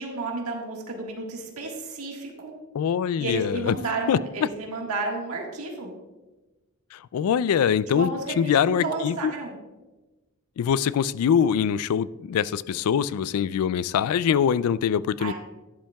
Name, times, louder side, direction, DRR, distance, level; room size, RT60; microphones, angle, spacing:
voice 1, 0.0-2.5 3.2-5.9 7.9-9.5 15.2-15.3, right 2 dB, 85° right, 0 dB, 1.6 m, -32 dB
voice 2, 2.7-3.7 4.1-4.2 6.9-9.3 10.6-15.3, left 8 dB, 85° left, 19 dB, 0.3 m, -23 dB
11.5 x 10.5 x 2.3 m, 1.1 s
head